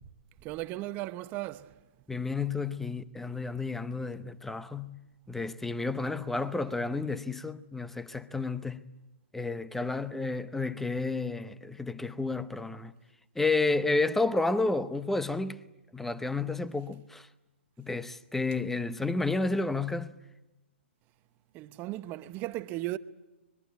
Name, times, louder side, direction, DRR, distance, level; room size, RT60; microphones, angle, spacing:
voice 1, 0.4-1.7 6.3-6.8 21.5-23.0, right 17 dB, 30° right, 0.9 m, -37 dB
voice 2, 2.1-5.0 5.3-8.8 9.3-12.9 13.4-15.6 15.9-17.3 17.8-20.1, left 3 dB, 5° left, 0.8 m, -31 dB
23.5 x 21.5 x 9.4 m
hypercardioid pair, 135°, 7 cm